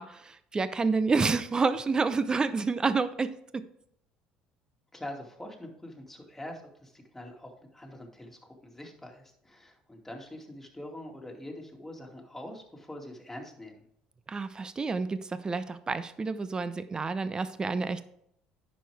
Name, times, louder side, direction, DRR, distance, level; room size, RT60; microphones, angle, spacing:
voice 1, 0.0-3.6 14.3-18.0, right 4 dB, 25° right, 13 dB, 0.7 m, -29 dB
voice 2, 4.9-13.8, left 1 dB, 10° left, 0 dB, 2.5 m, -44 dB
10.0 x 6.5 x 3.5 m, 0.72 s
hypercardioid pair, 70°, 3 cm